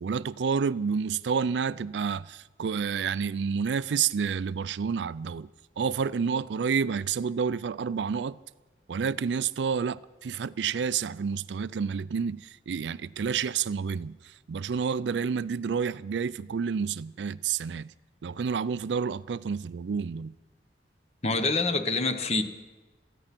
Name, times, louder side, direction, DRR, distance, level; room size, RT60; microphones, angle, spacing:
voice 1, 0.0-5.5 5.8-8.4 8.9-17.9 18.2-20.3, right 6 dB, 85° right, 0.4 m, -29 dB
voice 2, 21.2-22.4, left 3 dB, 35° left, 1.0 m, -26 dB
16.5 x 14.0 x 6.0 m
head